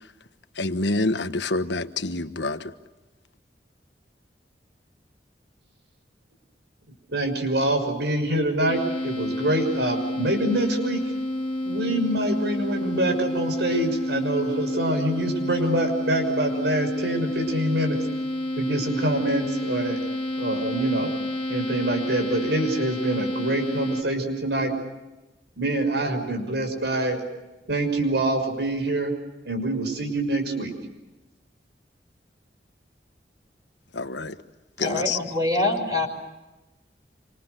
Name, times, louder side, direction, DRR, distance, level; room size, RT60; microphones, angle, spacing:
voice 1, 0.6-2.7 33.9-34.4 34.8-35.2, left 3 dB, 85° left, 1.3 m, -27 dB
voice 2, 7.1-11.0 11.6-18.0 18.6-20.0 20.4-21.1 21.5-24.7 25.6-27.2 27.7-29.1 29.4-30.7, right 1 dB, 75° right, 6.2 m, -25 dB
sound 1, 8.7-24.0, left 1 dB, 30° left, 1.9 m, -29 dB
voice 3, 34.8-36.1, left 2 dB, 20° right, 5.8 m, -24 dB
27.5 x 26.5 x 6.8 m
head